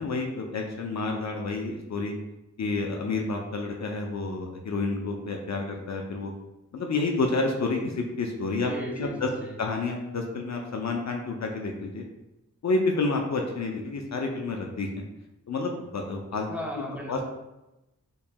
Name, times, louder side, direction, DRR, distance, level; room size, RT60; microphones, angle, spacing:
voice 1, 0.0-2.1 2.6-6.3 6.7-8.7 9.0-9.3 9.6-12.0 12.6-14.9 15.5-16.5 17.1-17.2, left 3 dB, 60° left, 2 dB, 0.5 m, -29 dB
voice 2, 8.6-9.6 16.5-17.2, equal, 5° right, -3 dB, 0.7 m, -36 dB
4.4 x 3.1 x 2.2 m, 0.95 s
wide cardioid pair, 70°, 32 cm